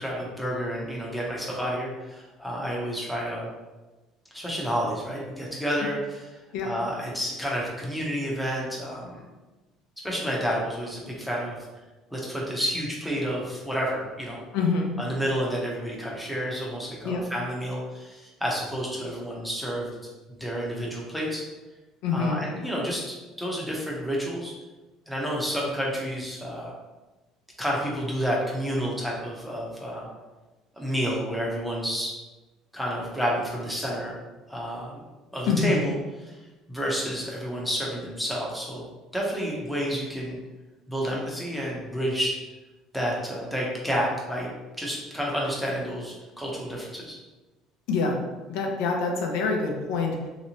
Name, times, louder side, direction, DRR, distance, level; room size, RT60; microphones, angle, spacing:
voice 1, 0.0-3.5 4.3-6.3 6.6-9.2 10.0-11.6 12.1-14.4 15.0-20.1 20.4-21.4 22.1-24.5 25.1-26.7 27.6-30.1 30.8-32.2 32.7-34.2 34.5-35.0 35.3-36.0 36.3-36.4 36.7-40.4 40.9-42.4 42.9-44.5 44.8-47.2, equal, ahead, -4 dB, 0.7 m, -30 dB
voice 2, 14.5-14.9 17.0-17.2 22.0-22.4 35.5-35.8 47.9-48.2 48.5-50.1, left 4 dB, 85° left, 1 dB, 0.6 m, -25 dB
3.2 x 2.9 x 2.8 m, 1.2 s
cardioid pair, 155°, 0 cm